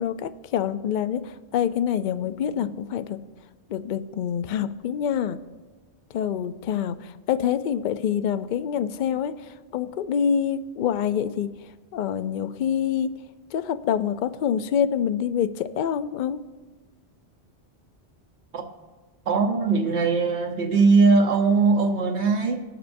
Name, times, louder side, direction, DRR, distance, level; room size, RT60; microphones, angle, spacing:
voice 1, 0.0-3.2 3.7-5.4 6.1-11.5 11.9-13.1 13.5-16.4, left 8 dB, 55° left, 11 dB, 0.6 m, -26 dB
voice 2, 19.3-22.6, right 4 dB, 80° right, 2 dB, 1.2 m, -20 dB
20.0 x 6.9 x 2.6 m, 1.3 s
omnidirectional pair, 1.1 m